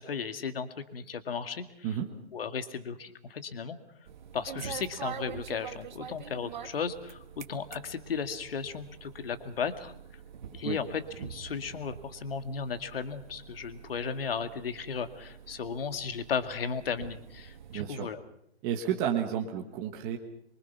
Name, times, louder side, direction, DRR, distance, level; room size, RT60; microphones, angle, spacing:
voice 1, 0.0-1.9 2.3-3.8 4.3-9.9 10.5-18.2, left 6 dB, 55° left, 9 dB, 2.2 m, -35 dB
sound 1, 4.1-17.9, right 8 dB, 45° right, 1.7 m, -46 dB
voice 2, 17.7-18.1 18.6-20.2, right 9 dB, 15° right, 2 dB, 1.2 m, -31 dB
25.0 x 24.5 x 5.9 m, 0.72 s
hypercardioid pair, 170°, 34 cm